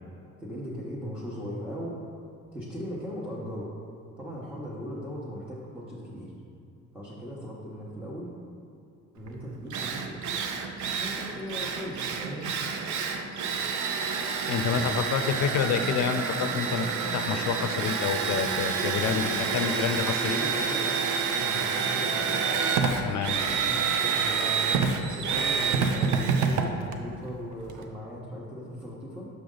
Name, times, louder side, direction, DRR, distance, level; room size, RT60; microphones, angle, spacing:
voice 1, 0.4-1.9 2.5-3.7 4.2-6.3 6.9-8.3 9.1-10.4 11.0-12.6 14.4-15.0 19.0-21.0 21.3-22.4 23.4-29.3, equal, 5° right, -7 dB, 1.2 m, -39 dB
Drill, 9.3-9.4 9.7-27.8, right 5 dB, 75° right, 0.6 m, -28 dB
voice 2, 14.1-20.4 23.0-23.4, left 7 dB, 70° left, 9 dB, 0.5 m, -29 dB
6.4 x 5.0 x 3.9 m, 2.4 s
cardioid pair, 90°, 30 cm